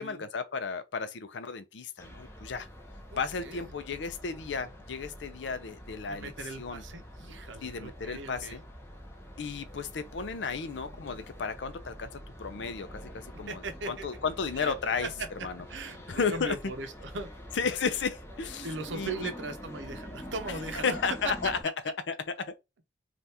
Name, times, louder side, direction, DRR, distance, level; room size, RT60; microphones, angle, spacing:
voice 1, 0.0-2.7 3.2-6.3 6.6-6.8 7.6-8.6 9.4-12.1 12.4-13.6 13.9-15.1 15.4-15.5 16.1-16.5 17.6-18.7 18.9-19.3 20.8-21.6 22.1-22.5, left 5 dB, 80° left, 0.5 m, -33 dB
sound 1, 2.0-21.6, equal, 15° left, 0.7 m, -46 dB
voice 2, 3.1-3.7 6.1-8.6 13.5-14.1 14.5-14.7 15.0-15.3 15.7-17.3 17.9-18.1 18.6-21.0, right 3 dB, 85° right, 0.7 m, -39 dB
3.4 x 2.4 x 2.8 m
head